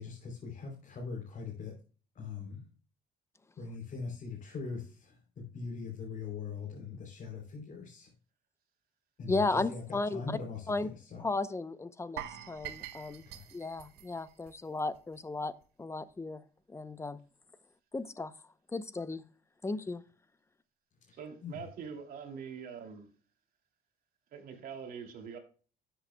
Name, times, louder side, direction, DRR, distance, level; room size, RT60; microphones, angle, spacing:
voice 1, 0.0-1.7 2.2-2.6 3.6-8.1 9.2-9.4 9.7-10.7 11.1-11.2 13.3-13.4 21.1-21.2 21.4-21.6, left 5 dB, 50° left, 3.4 m, -41 dB
voice 2, 9.3-10.4 10.7-10.9 11.2-13.2 13.5-15.5 15.8-16.4 16.7-17.2 17.9-18.3 18.7-19.2 19.6-20.0, left 3 dB, 15° left, 0.7 m, -34 dB
sound 1, 12.2-15.2 15.4-15.6 16.1-16.2, right 11 dB, 80° right, 1.0 m, -45 dB
voice 3, 21.1-23.1 24.3-25.4, right 6 dB, 60° right, 2.6 m, -44 dB
13.0 x 8.0 x 2.2 m
cardioid pair, 110°, 17 cm